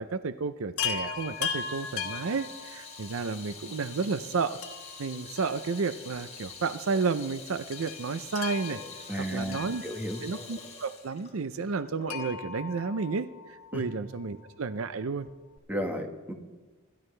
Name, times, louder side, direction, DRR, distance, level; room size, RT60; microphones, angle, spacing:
voice 1, 0.0-4.6 5.0-8.8 9.2-9.8 10.2-15.3, right 4 dB, 65° right, 12 dB, 0.5 m, -32 dB
Chime, 0.8-3.2 4.6-6.2 6.4-6.5 7.7-10.4 12.1-13.7 15.3-15.4 15.6-15.7, left 7 dB, 90° left, 1.4 m, -37 dB
Water tap faucet / Sink (filling or washing), 1.1-12.4, left 4 dB, 30° left, 2.7 m, -46 dB
voice 2, 9.1-10.2 13.7-13.8 15.7-16.3, equal, 10° right, 3 dB, 1.5 m, -33 dB
25.5 x 12.5 x 3.3 m, 1.2 s
head